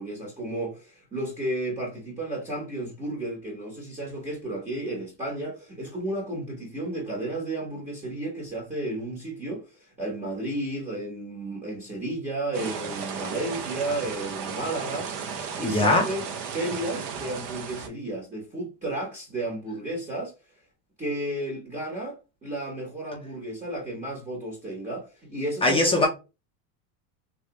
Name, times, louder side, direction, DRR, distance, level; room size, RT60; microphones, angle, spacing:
voice 1, 0.0-15.1 15.6-20.3 21.0-26.1, right 1 dB, 15° right, 1.2 m, -33 dB
sound 1, 12.5-17.9, right 6 dB, 50° right, 0.8 m, -34 dB
voice 2, 15.6-16.1 25.6-26.1, left 2 dB, 15° left, 0.5 m, -21 dB
3.1 x 2.5 x 2.9 m
supercardioid pair, 130°, 44 cm